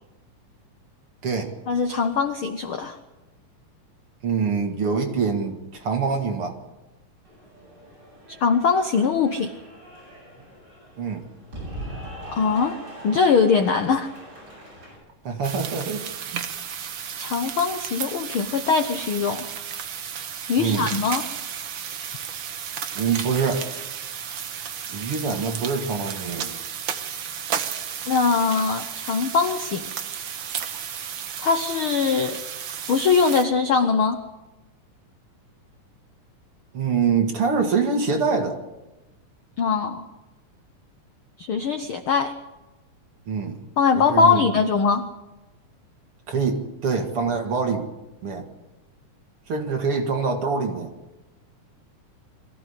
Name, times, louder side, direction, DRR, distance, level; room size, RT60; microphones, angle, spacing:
voice 1, 1.7-3.0 8.4-9.5 12.3-12.8 13.0-14.1 17.2-19.5 20.5-21.3 28.1-29.9 31.4-32.4 32.9-34.2 39.6-40.1 41.4-42.3 43.8-45.1, left 5 dB, 70° left, 8 dB, 1.2 m, -21 dB
voice 2, 4.2-6.5 11.0-11.2 15.2-16.0 16.3-16.5 20.6-20.9 22.9-23.7 24.9-26.5 36.7-38.6 43.3-43.6 44.1-44.4 46.3-47.9 48.2-48.4 49.5-50.9, right 5 dB, 45° right, 3 dB, 2.6 m, -25 dB
Cheering / Applause, 7.2-15.0, right 1 dB, 30° right, 8.7 m, -41 dB
sound 1, 15.4-33.4, right 8 dB, 70° right, 1.1 m, -33 dB
23.0 x 15.0 x 8.2 m, 1.0 s
omnidirectional pair, 3.8 m